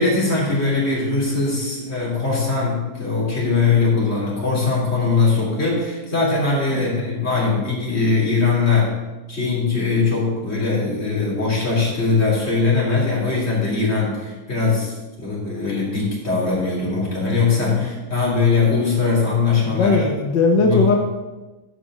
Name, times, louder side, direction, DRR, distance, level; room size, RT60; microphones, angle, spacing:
voice 1, 0.0-8.9 9.3-20.0 20.6-20.8, left 4 dB, 35° left, -5 dB, 3.5 m, -21 dB
voice 2, 6.7-7.1 17.8-18.0 19.6-21.0, left 3 dB, 90° left, 1 dB, 1.7 m, -19 dB
12.0 x 5.4 x 6.2 m, 1.2 s
omnidirectional pair, 1.9 m